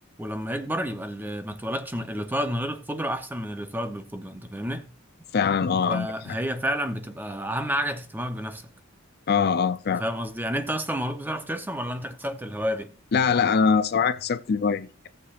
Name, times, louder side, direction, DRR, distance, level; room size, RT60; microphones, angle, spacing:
voice 1, 0.2-4.9 5.9-8.7 9.9-12.9, equal, 10° right, 0.8 m, -30 dB
voice 2, 5.3-6.1 9.3-10.0 13.1-15.1, left 6 dB, 50° left, 0.4 m, -23 dB
18.0 x 6.7 x 2.5 m
head